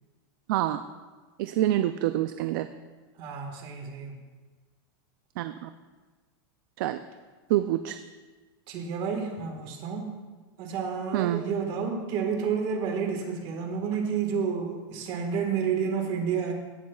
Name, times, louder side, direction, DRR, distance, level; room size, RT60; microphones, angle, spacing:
voice 1, 0.5-0.8 1.4-2.7 5.4-5.7 6.8-7.0 7.5-8.0 11.1-11.4, right 13 dB, 60° right, 10 dB, 0.4 m, -26 dB
voice 2, 3.2-4.2 8.7-10.1 10.6-16.5, right 6 dB, 45° right, 3 dB, 1.5 m, -30 dB
16.0 x 7.4 x 2.3 m, 1.3 s
supercardioid pair, 155°, 12 cm